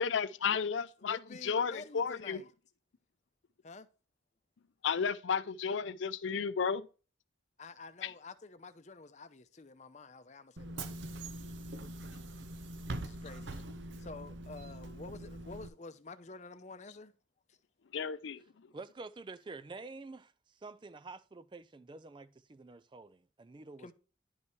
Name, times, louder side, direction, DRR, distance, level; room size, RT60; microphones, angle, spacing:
voice 1, 0.0-2.4 4.8-6.9 8.0-8.1 17.9-18.4, left 6 dB, 80° left, 0.5 m, -33 dB
voice 2, 1.0-2.5 3.6-3.9 7.6-11.0 13.0-13.6 14.0-17.1 17.5-17.6 23.8-23.9, left 3 dB, 40° left, 0.7 m, -49 dB
Bus / Engine, 10.6-15.7, right 1 dB, 75° right, 0.8 m, -43 dB
voice 3, 18.7-23.9, right 3 dB, 25° right, 0.4 m, -48 dB
10.5 x 5.4 x 3.2 m
head